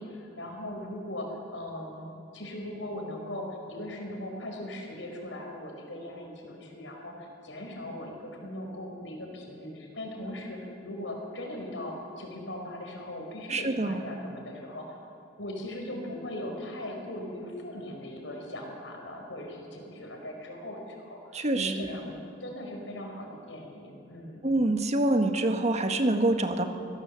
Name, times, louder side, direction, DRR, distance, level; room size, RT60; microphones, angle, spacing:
voice 1, 0.0-15.0 15.4-24.4, left 1 dB, 90° left, 1 dB, 4.9 m, -39 dB
voice 2, 13.5-14.0 21.3-22.0 24.4-26.6, right 2 dB, 40° right, 6 dB, 1.5 m, -26 dB
24.5 x 16.5 x 7.6 m, 2.7 s
head